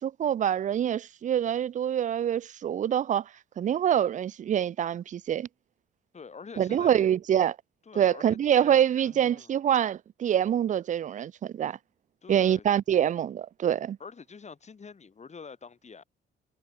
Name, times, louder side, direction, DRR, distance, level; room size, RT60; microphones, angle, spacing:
voice 1, 0.0-3.3 3.6-5.5 6.6-7.6 8.0-11.8 12.3-14.0, right 10 dB, 40° right, 0.4 m, -25 dB
voice 2, 6.1-7.1 7.9-9.5 12.2-12.6 14.0-16.0, left 5 dB, 35° left, 2.7 m, -46 dB
cardioid pair, 90°, 20 cm